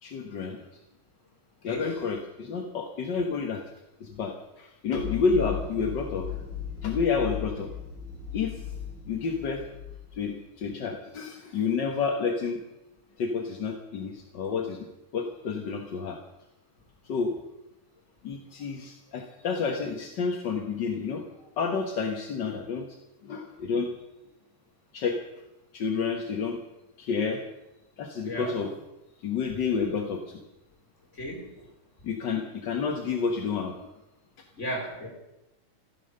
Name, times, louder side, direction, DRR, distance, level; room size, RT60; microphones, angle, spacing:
voice 1, 0.0-0.8 1.6-3.6 4.0-6.4 6.8-7.7 8.3-8.6 9.1-9.7 10.1-12.6 13.2-14.9 15.1-16.2 17.0-17.4 18.2-21.3 21.6-23.0 23.2-23.9 24.9-25.2 25.7-26.6 27.0-27.4 28.0-28.7 29.2-30.4 32.0-33.9, left 5 dB, 50° left, 3 dB, 1.4 m, -30 dB
voice 2, 1.6-2.0 5.3-5.5 28.3-28.5 31.2-31.5 34.6-35.1, equal, 20° left, 0 dB, 4.0 m, -34 dB
sound 1, 4.9-10.1, left 8 dB, 85° right, 7.5 m, -37 dB
15.0 x 12.5 x 6.7 m, 0.94 s
omnidirectional pair, 3.5 m